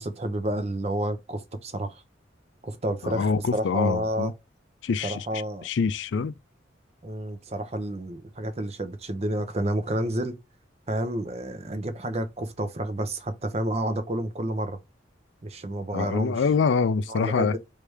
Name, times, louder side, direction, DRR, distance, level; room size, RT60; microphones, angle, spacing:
voice 1, 0.0-2.0 2.6-4.3 5.0-5.7 7.0-10.4 10.9-14.8 15.4-16.4 17.1-17.6, right 1 dB, 35° right, 0.7 m, -30 dB
voice 2, 3.0-4.3 4.8-5.3 5.6-6.3 15.9-17.6, left 5 dB, 75° left, 0.4 m, -25 dB
3.3 x 3.2 x 4.7 m
head